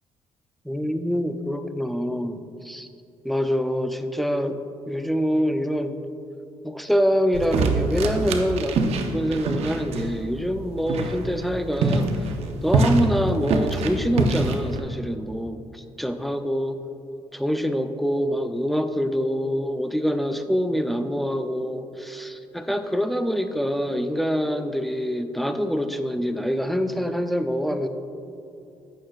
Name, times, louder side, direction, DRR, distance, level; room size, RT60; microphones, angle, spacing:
voice 1, 0.6-2.9 3.2-4.6 4.9-6.0 6.6-12.2 12.6-16.8 17.3-27.9, equal, ahead, 8 dB, 0.6 m, -25 dB
sound 1, 7.3-14.8, right 3 dB, 70° right, 0.8 m, -25 dB
15.0 x 6.5 x 2.4 m, 2.7 s
cardioid pair, 85°, 11 cm